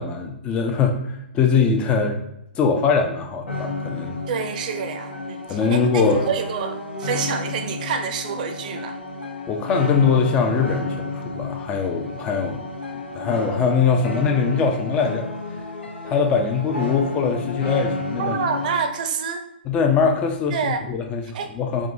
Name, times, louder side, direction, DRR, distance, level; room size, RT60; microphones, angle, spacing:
voice 1, 0.0-2.2 2.6-4.2 5.5-6.2 9.5-12.6 13.1-15.3 16.0-18.4 19.7-21.2 21.5-21.9, left 5 dB, 20° left, 3 dB, 0.4 m, -22 dB
sound 1, 3.5-18.9, left 2 dB, 90° left, 0.9 m, -31 dB
voice 2, 4.3-9.0 18.2-19.5 20.5-20.8 21.3-21.6, right 6 dB, 45° right, 7 dB, 0.5 m, -27 dB
4.7 x 2.6 x 2.6 m, 0.81 s
hypercardioid pair, 140°, 6 cm